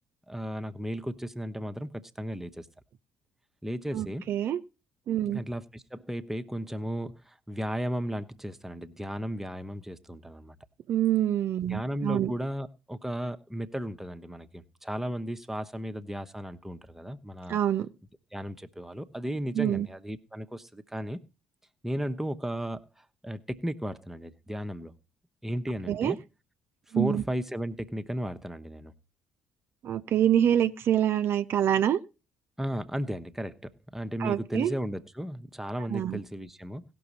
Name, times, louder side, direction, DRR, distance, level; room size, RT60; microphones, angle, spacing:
voice 1, 0.3-2.7 3.6-4.2 5.3-10.6 11.7-17.6 18.3-21.2 21.8-24.9 25.4-26.2 26.9-28.9 32.6-36.8, equal, 5° right, 0.9 m, -35 dB
voice 2, 3.9-4.6 5.1-5.4 10.9-12.3 17.5-17.9 19.5-19.9 25.9-26.1 26.9-27.2 29.8-32.0 34.2-34.7 35.9-36.2, right 10 dB, 55° right, 0.6 m, -26 dB
17.0 x 6.1 x 4.1 m
hypercardioid pair, 50°, 5 cm